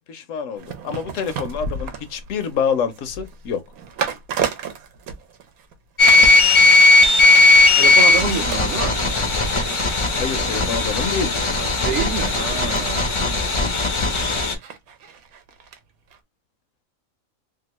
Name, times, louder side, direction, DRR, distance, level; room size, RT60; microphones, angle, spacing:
voice 1, 0.1-3.6 10.2-11.3 13.2-13.4, left 6 dB, 70° left, 0.9 m, -26 dB
sound 1, 0.6-5.7 6.1-6.4 6.7-15.8 16.1-16.2, right 6 dB, 90° right, 1.1 m, -34 dB
sound 2, 6.0-14.5, left 3 dB, 50° left, 0.3 m, -16 dB
voice 2, 7.7-9.0 11.6-13.1, right 6 dB, 65° right, 0.8 m, -27 dB
2.9 x 2.3 x 2.9 m
omnidirectional pair, 1.4 m